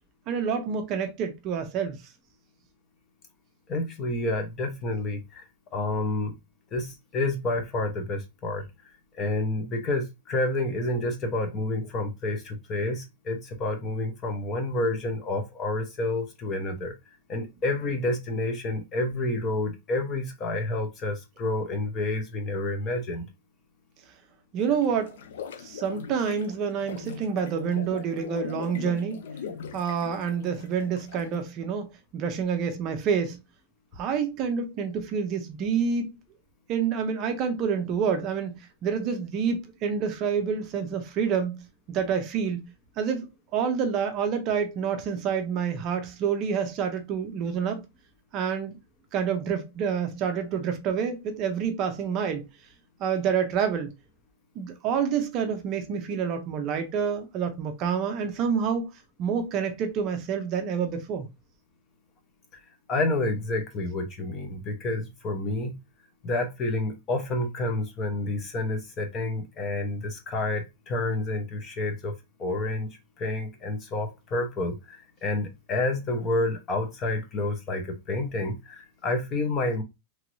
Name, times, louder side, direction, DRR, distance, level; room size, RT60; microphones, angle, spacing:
voice 1, 0.3-2.0 24.5-25.2 25.6-29.2 29.7-31.9 32.1-33.4 34.0-36.2 36.7-42.7 43.0-47.8 48.3-48.8 49.1-52.5 53.0-53.9 54.6-58.9 59.2-61.3, right 6 dB, 30° right, 0.5 m, -28 dB
voice 2, 3.7-6.4 6.7-8.7 9.2-16.9 17.3-23.3 62.9-65.8 66.2-72.1 72.4-72.9 73.2-79.8, left 2 dB, 25° left, 0.6 m, -29 dB
sound 1, 24.6-31.3, left 7 dB, 80° left, 0.4 m, -40 dB
3.0 x 2.4 x 3.0 m
supercardioid pair, 165°, 0 cm